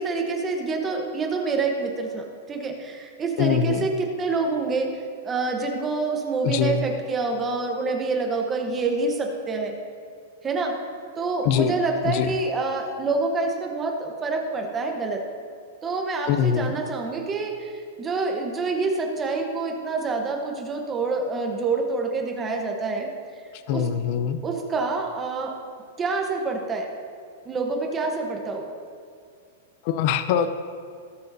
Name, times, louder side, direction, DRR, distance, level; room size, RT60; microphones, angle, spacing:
voice 1, 0.0-9.7 10.4-10.8 11.2-15.2 15.8-23.1 23.7-23.8 24.4-25.6 26.0-26.9 27.4-28.7, right 3 dB, 15° right, 2 dB, 0.9 m, -27 dB
voice 2, 3.4-3.9 6.4-6.8 11.4-11.7 12.0-12.3 16.3-16.7 23.7-24.4 29.8-30.5, left 8 dB, 40° left, 11 dB, 0.5 m, -23 dB
19.5 x 6.7 x 2.7 m, 2.3 s
supercardioid pair, 165°, 0 cm